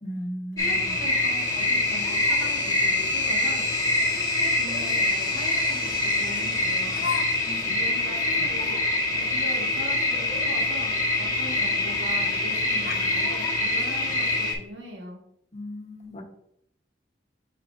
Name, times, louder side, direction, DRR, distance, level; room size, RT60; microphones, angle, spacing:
voice 1, 0.0-1.0 7.4-7.6 15.5-16.2, equal, 40° left, 2 dB, 1.2 m, -36 dB
sound 1, 0.6-14.5, left 2 dB, 20° left, 1.4 m, -25 dB
voice 2, 0.6-3.7 4.1-7.0 7.7-8.8 9.1-15.2, right 1 dB, 75° right, -1 dB, 1.8 m, -40 dB
Laughter, 4.7-5.1 6.0-6.1 6.9-7.3 7.5-7.7 8.1-8.2 8.6-8.7 10.7-10.8 11.1-11.2 12.1-12.4 12.7-14.4, left 5 dB, 60° left, 0.6 m, -36 dB
8.4 x 4.4 x 2.6 m, 0.73 s
head